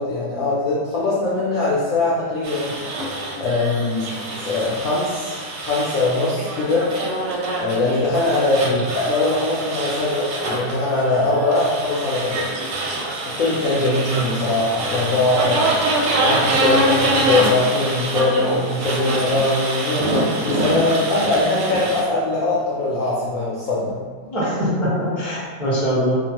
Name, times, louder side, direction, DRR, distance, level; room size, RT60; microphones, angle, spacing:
voice 1, 0.0-2.8 3.4-6.9 7.6-12.5 13.4-15.7 16.2-24.0, left 2 dB, 70° left, -8 dB, 0.8 m, -21 dB
sound 1, 2.4-22.0, right 2 dB, 90° right, 1.3 m, -25 dB
voice 2, 24.2-26.2, equal, ahead, -10 dB, 0.5 m, -22 dB
2.9 x 2.1 x 2.8 m, 1.6 s
omnidirectional pair, 1.9 m